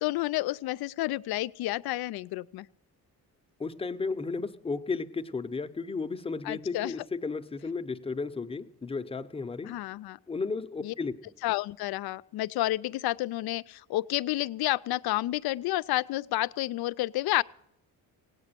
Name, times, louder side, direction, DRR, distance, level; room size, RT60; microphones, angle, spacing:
voice 1, 0.0-2.7 6.5-6.9 9.6-10.2 10.8-10.9 11.4-17.4, left 17 dB, 85° left, 17 dB, 0.5 m, -30 dB
voice 2, 3.6-9.8 10.3-11.1, left 4 dB, 15° left, 7 dB, 0.7 m, -34 dB
17.5 x 8.8 x 6.8 m, 0.78 s
cardioid pair, 100°, 37 cm